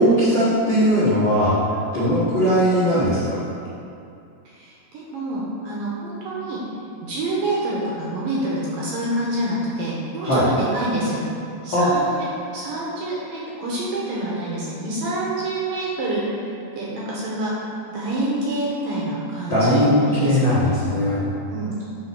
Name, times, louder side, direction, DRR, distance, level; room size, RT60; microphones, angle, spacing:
voice 1, 0.0-1.6 1.9-3.4 10.2-10.5 11.7-11.9 19.5-21.2, equal, 60° left, -11 dB, 1.1 m, -19 dB
voice 2, 4.5-6.6 7.0-11.2 11.6-16.2 16.8-17.5 17.9-19.8 20.1-20.7 21.5-21.8, right 1 dB, 70° right, -5 dB, 2.2 m, -27 dB
8.1 x 4.1 x 5.8 m, 2.5 s
omnidirectional pair, 4.8 m